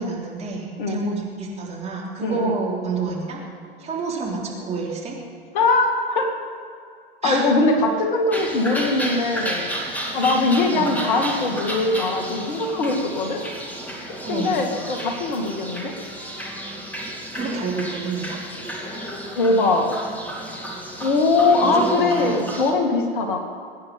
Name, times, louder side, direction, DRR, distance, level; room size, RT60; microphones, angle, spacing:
voice 1, 0.0-3.4 3.8-5.2 7.2-7.4 10.7-10.9 14.2-14.6 17.3-18.4 21.6-22.5, right 4 dB, 20° right, -3 dB, 3.6 m, -28 dB
voice 2, 2.2-2.6 5.5-6.3 7.2-9.7 10.1-13.4 14.3-15.9 18.8-19.1 19.4-19.9 21.0-23.4, left 3 dB, 55° left, 3 dB, 2.2 m, -21 dB
sound 1, 8.3-22.7, right 1 dB, 5° left, 2.3 m, -32 dB
23.0 x 9.5 x 5.5 m, 2.3 s
figure-of-eight pair, 95°, 30 cm